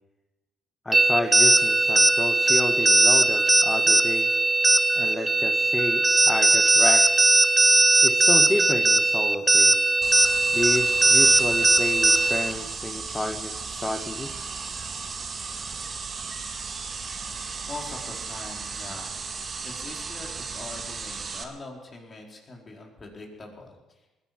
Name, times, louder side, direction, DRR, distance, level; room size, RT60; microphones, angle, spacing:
voice 1, 0.8-4.3 4.9-7.0 8.0-9.8 10.5-14.5, left 2 dB, 20° left, 5 dB, 1.6 m, -30 dB
sound 1, 0.9-12.5, right 2 dB, 20° right, 1.0 m, -19 dB
sound 2, 10.0-21.4, right 5 dB, 45° right, 2.0 m, -35 dB
voice 2, 17.7-19.1 19.6-23.8, left 3 dB, 40° left, 0 dB, 4.7 m, -42 dB
20.5 x 11.0 x 6.1 m, 1.1 s
hypercardioid pair, 55°, 0 cm